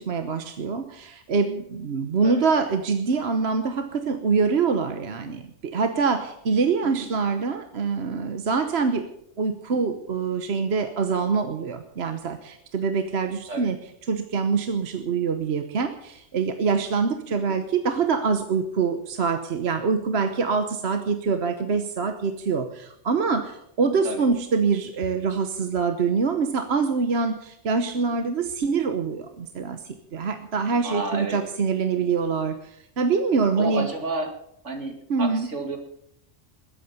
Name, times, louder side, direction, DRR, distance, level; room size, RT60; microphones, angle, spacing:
voice 1, 0.0-9.1 9.4-13.8 14.1-33.9 35.1-35.5, right 5 dB, 65° right, 7 dB, 1.3 m, -25 dB
voice 2, 17.3-17.6 24.0-24.3 28.1-28.2 30.8-31.4 33.6-34.3 34.6-35.8, right 2 dB, 80° right, 4 dB, 2.8 m, -31 dB
21.0 x 8.8 x 7.0 m, 0.74 s
omnidirectional pair, 1.2 m